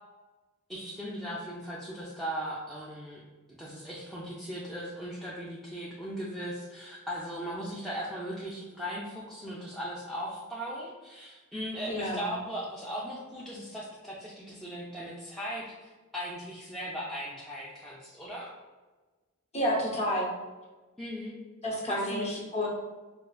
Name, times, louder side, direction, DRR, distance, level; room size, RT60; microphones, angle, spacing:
voice 1, 0.7-3.2 3.6-18.5 21.0-21.4 21.9-22.4, equal, ahead, -7 dB, 0.3 m, -38 dB
voice 2, 11.9-12.3 19.5-20.3 21.6-22.7, equal, 30° left, -3 dB, 0.7 m, -30 dB
4.4 x 2.2 x 2.3 m, 1.3 s
head